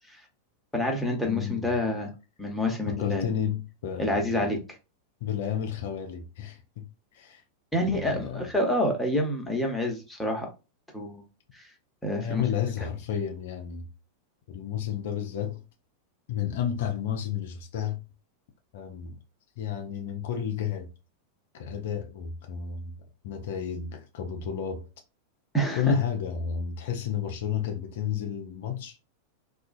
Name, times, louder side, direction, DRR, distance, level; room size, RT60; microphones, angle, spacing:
voice 1, 0.7-2.1 2.4-3.2 4.0-4.6 7.7-10.5 10.9-11.2 11.5-11.6 12.0-12.4 25.5-25.9, left 1 dB, 5° left, 0.8 m, -27 dB
voice 2, 1.2-1.8 2.9-4.6 5.2-6.9 7.1-7.4 7.7-8.5 12.2-13.9 14.5-15.6 16.3-18.0 18.7-19.2 19.6-20.9 21.6-23.0 23.2-24.9 25.7-29.0, left 9 dB, 55° left, 0.4 m, -32 dB
2.3 x 2.2 x 2.4 m
figure-of-eight pair, 90°, 0 cm